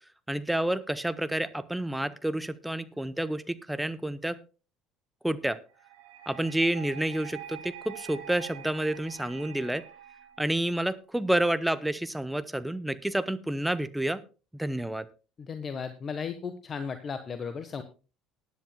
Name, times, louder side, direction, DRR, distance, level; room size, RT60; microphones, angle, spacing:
voice 1, 0.3-4.4 5.2-5.6 6.3-9.8 10.4-14.2 14.5-15.1, right 1 dB, 5° right, 13 dB, 0.9 m, -29 dB
sound 1, 5.8-10.8, right 10 dB, 70° right, 1.7 m, -46 dB
voice 2, 15.4-17.8, left 6 dB, 35° left, 9 dB, 1.1 m, -35 dB
19.0 x 10.5 x 2.2 m, 0.33 s
figure-of-eight pair, 60°, 0 cm